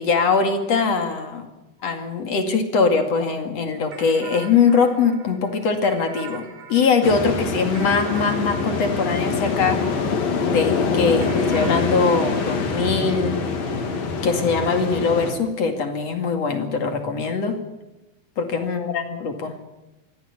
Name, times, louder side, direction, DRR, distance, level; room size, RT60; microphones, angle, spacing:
voice 1, 0.0-1.5 1.8-9.9 10.4-13.4 14.2-17.6 18.4-19.5, left 5 dB, 50° left, 6 dB, 3.2 m, -22 dB
sound 1, 3.9-10.5 11.2-14.0, right 7 dB, 60° right, 3.6 m, -42 dB
sound 2, 7.0-15.3, left 4 dB, 75° left, 4.6 m, -24 dB
23.5 x 15.5 x 8.6 m, 0.98 s
omnidirectional pair, 4.1 m